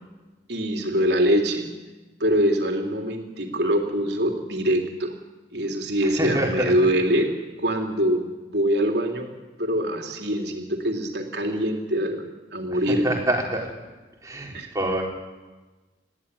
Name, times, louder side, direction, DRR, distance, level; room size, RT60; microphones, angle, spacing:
voice 1, 0.5-1.7 2.2-5.1 5.5-7.3 7.6-8.2 8.5-9.3 9.6-12.2 12.5-13.1 14.5-14.7, equal, 65° right, 2 dB, 3.5 m, -23 dB
voice 2, 6.0-6.7 12.7-13.7 14.2-15.0, right 1 dB, 20° right, -1 dB, 3.9 m, -26 dB
20.0 x 15.0 x 9.9 m, 1.2 s
head